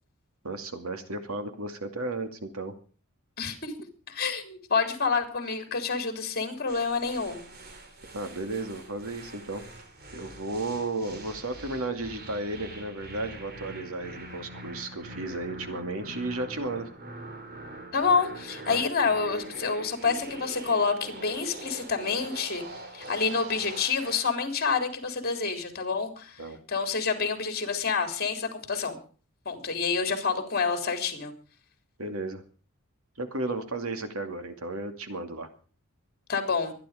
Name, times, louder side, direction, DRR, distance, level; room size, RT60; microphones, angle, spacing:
voice 1, 0.4-2.8 8.1-9.6 10.1-16.9 18.7-18.8 26.4-26.6 32.0-32.4 33.2-35.5, right 2 dB, 75° right, 7 dB, 2.4 m, -34 dB
voice 2, 3.4-3.7 4.1-7.4 17.9-22.6 22.9-26.4 26.7-29.0 29.4-31.3 36.3-36.7, left 5 dB, 45° left, 7 dB, 3.5 m, -28 dB
sound 1, 6.7-24.4, right 2 dB, 45° right, 3.1 m, -43 dB
23.5 x 10.5 x 5.1 m, 0.41 s
head